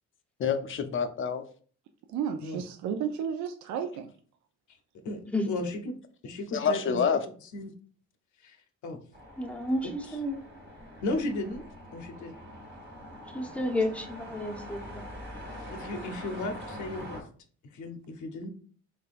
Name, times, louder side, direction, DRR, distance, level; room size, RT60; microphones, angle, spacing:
voice 1, 0.4-1.4 6.5-7.2, left 6 dB, 45° left, 9 dB, 0.5 m, -27 dB
voice 2, 2.1-4.1, right 7 dB, 70° right, 6 dB, 0.5 m, -32 dB
voice 3, 5.0-6.0 6.2-7.2 7.5-7.7 8.4-8.6 8.8-9.0 9.8-10.2 11.0-11.6 11.9-12.3 15.4-17.2 17.7-18.5, left 2 dB, 75° left, 5 dB, 0.8 m, -35 dB
sound 1, 9.1-17.2, equal, 35° right, 1.3 m, -44 dB
voice 4, 9.4-10.4 13.3-15.0, left 1 dB, 5° left, 3 dB, 0.6 m, -31 dB
3.6 x 3.4 x 2.5 m, 0.44 s
cardioid pair, 90°, 30 cm